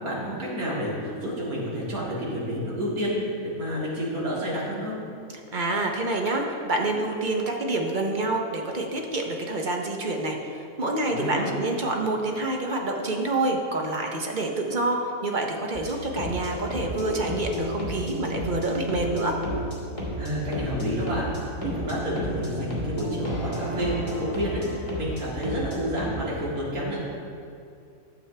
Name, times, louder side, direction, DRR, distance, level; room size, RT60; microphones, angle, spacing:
voice 1, 0.0-5.0 11.0-11.5 20.2-21.3 21.6-27.0, equal, 70° right, -6 dB, 2.6 m, -29 dB
voice 2, 5.5-19.4, right 2 dB, 40° right, 1 dB, 0.8 m, -27 dB
sound 1, 15.7-26.1, equal, 20° left, 2.1 m, -33 dB
12.5 x 7.3 x 3.3 m, 2.4 s
omnidirectional pair, 1.6 m